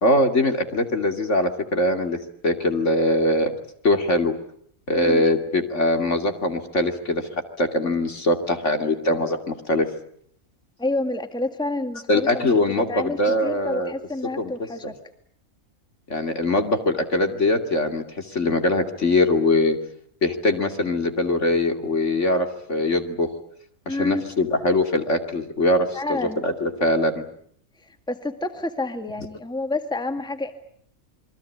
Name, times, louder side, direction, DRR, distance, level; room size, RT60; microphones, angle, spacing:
voice 1, 0.0-2.2 2.4-3.5 3.8-4.3 4.9-9.4 9.7-9.9 12.1-13.9 14.4-14.5 14.8-14.9 16.1-19.8 20.2-23.3 23.9-27.2, left 2 dB, 60° left, 5 dB, 3.0 m, -22 dB
voice 2, 4.9-5.2 10.8-12.6 12.9-14.9 23.9-24.2 25.9-26.4 27.8-30.5, left 2 dB, 5° left, 7 dB, 1.9 m, -29 dB
28.5 x 23.0 x 8.5 m, 0.65 s
omnidirectional pair, 1.4 m